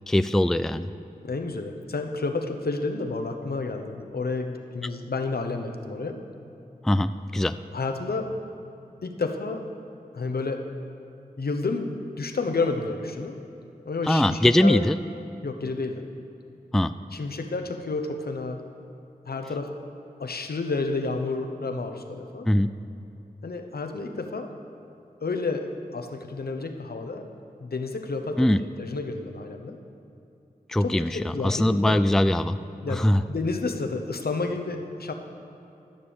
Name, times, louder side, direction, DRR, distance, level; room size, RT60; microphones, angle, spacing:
voice 1, 0.1-0.9 6.8-7.6 14.1-15.0 16.7-16.9 22.5-22.7 28.4-28.6 30.7-32.6 32.9-33.2, left 1 dB, 5° left, 12 dB, 0.3 m, -21 dB
voice 2, 1.2-6.2 7.7-8.3 9.0-9.6 10.1-10.6 11.4-13.4 13.9-14.8 15.4-16.1 17.1-18.6 19.3-19.7 20.2-22.5 23.4-24.5 25.2-27.3 27.6-28.5 28.8-29.8 30.8-32.0 32.8-35.1, left 3 dB, 75° left, 5 dB, 0.9 m, -30 dB
13.5 x 6.8 x 7.0 m, 2.7 s
cardioid pair, 45°, 16 cm